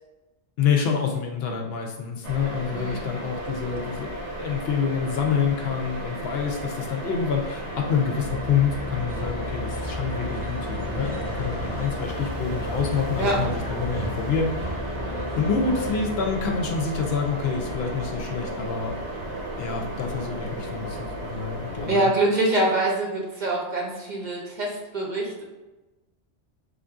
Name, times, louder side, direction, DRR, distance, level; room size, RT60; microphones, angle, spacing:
voice 1, 0.6-4.1 4.4-14.5 15.4-18.9 19.3-22.1, left 6 dB, 65° left, 2 dB, 0.7 m, -27 dB
sound 1, 2.2-21.9, right 1 dB, 80° right, 1.1 m, -34 dB
voice 2, 2.7-3.1 13.2-13.4 21.9-25.4, right 2 dB, 45° right, -2 dB, 0.8 m, -24 dB
sound 2, 8.2-18.0, left 2 dB, 45° left, 0.3 m, -36 dB
sound 3, 9.1-16.0, equal, 10° left, 1.1 m, -37 dB
3.7 x 2.5 x 3.4 m, 1.1 s
omnidirectional pair, 1.2 m